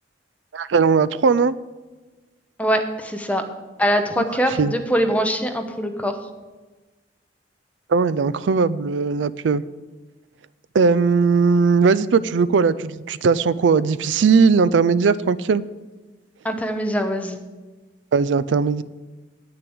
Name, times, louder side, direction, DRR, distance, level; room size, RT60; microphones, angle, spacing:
voice 1, 0.5-1.5 4.2-4.3 4.6-4.8 7.9-9.6 10.7-15.6 18.1-18.8, right 5 dB, 80° right, 18 dB, 0.4 m, -18 dB
voice 2, 2.6-3.4 3.8-6.2 16.4-17.4, equal, 10° left, 5 dB, 0.9 m, -23 dB
8.8 x 6.7 x 8.5 m, 1.2 s
head